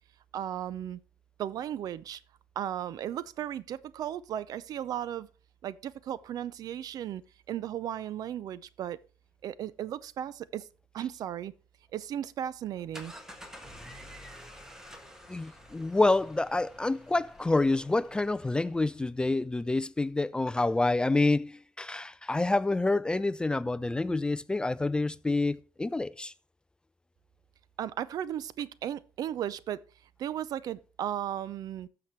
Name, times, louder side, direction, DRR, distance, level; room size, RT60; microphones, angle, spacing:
voice 1, 0.3-1.0 1.4-2.2 2.6-5.3 5.6-7.2 7.5-9.0 9.4-10.7 10.9-11.5 11.9-13.1 27.8-29.8 30.2-31.9, right 10 dB, 65° right, 0.5 m, -35 dB
sound 1, 12.6-19.0, equal, 5° right, 1.5 m, -50 dB
voice 2, 15.3-26.3, left 2 dB, 10° left, 0.3 m, -28 dB
14.0 x 5.9 x 3.1 m
cardioid pair, 110°, 7 cm